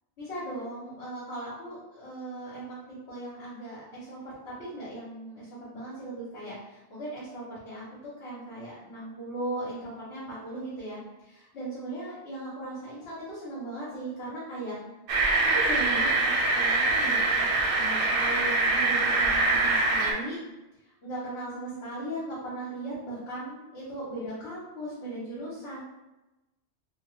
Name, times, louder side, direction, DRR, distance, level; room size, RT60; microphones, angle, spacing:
voice 1, 0.2-7.8 8.2-14.8 15.5-20.4 21.0-25.8, right 1 dB, 75° left, -10 dB, 1.2 m, -38 dB
sound 1, 15.1-20.1, right 3 dB, 65° right, 0.7 m, -24 dB
3.0 x 2.1 x 3.0 m, 1.0 s
omnidirectional pair, 1.1 m